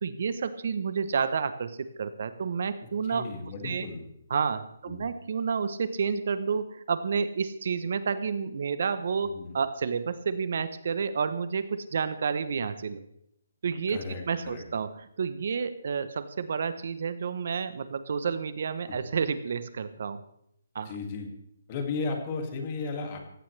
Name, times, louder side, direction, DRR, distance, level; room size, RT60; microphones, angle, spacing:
voice 1, 0.0-3.3 3.6-3.9 4.3-13.1 13.6-14.0 14.3-20.2 20.7-20.9, right 6 dB, 45° right, 12 dB, 0.8 m, -30 dB
voice 2, 3.0-4.1 4.9-5.1 9.3-9.6 13.9-14.6 18.9-19.0 20.8-21.3 21.7-23.2, left 4 dB, 25° left, 4 dB, 2.2 m, -35 dB
17.5 x 16.0 x 3.3 m, 0.75 s
hypercardioid pair, 175°, 0 cm